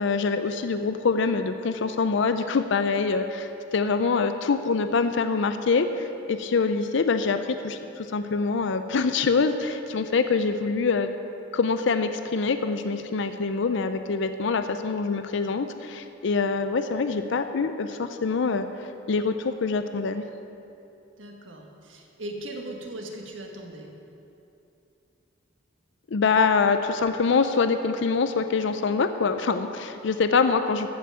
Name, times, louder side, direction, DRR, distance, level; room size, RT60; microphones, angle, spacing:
voice 1, 0.0-11.1 11.5-18.7 19.1-20.2 26.1-30.9, left 4 dB, 65° left, 9 dB, 0.5 m, -25 dB
voice 2, 21.2-23.9, right 1 dB, 70° right, 1 dB, 1.5 m, -38 dB
13.5 x 5.8 x 7.4 m, 2.8 s
head